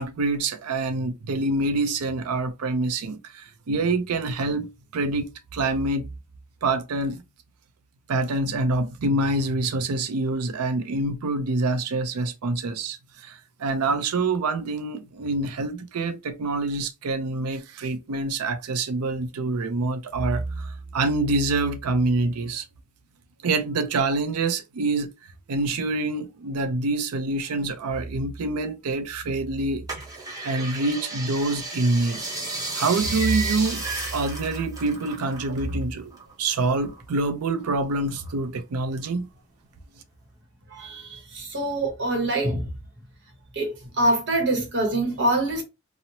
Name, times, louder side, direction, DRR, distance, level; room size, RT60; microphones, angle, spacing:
voice 1, 0.0-4.7 4.9-6.1 6.6-7.2 8.1-22.6 23.4-25.1 25.5-29.9 30.4-32.2 32.7-33.8 34.1-36.1 36.4-39.3, right 2 dB, 80° right, 0.5 m, -26 dB
sound 1, 29.9-35.7 36.0-37.3 37.7-38.6 39.1-39.2, right 3 dB, 15° right, 0.7 m, -33 dB
voice 2, 40.7-42.7 43.5-45.6, right 1 dB, 55° right, 0.9 m, -25 dB
2.9 x 2.0 x 2.6 m
head